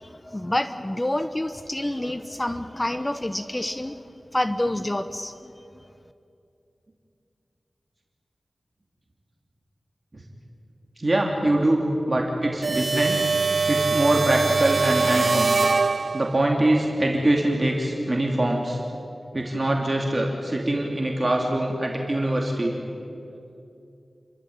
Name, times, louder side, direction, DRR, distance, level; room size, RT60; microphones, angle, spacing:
voice 1, 0.0-5.5, left 1 dB, 20° left, 10 dB, 1.0 m, -28 dB
voice 2, 11.0-13.2 13.7-15.5 16.1-18.8 19.3-22.7, right 1 dB, 35° right, 0 dB, 3.0 m, -23 dB
sound 1, 12.6-16.5, right 4 dB, 65° right, 0.5 m, -23 dB
30.0 x 13.5 x 8.8 m, 2.7 s
cardioid pair, 50°, 0 cm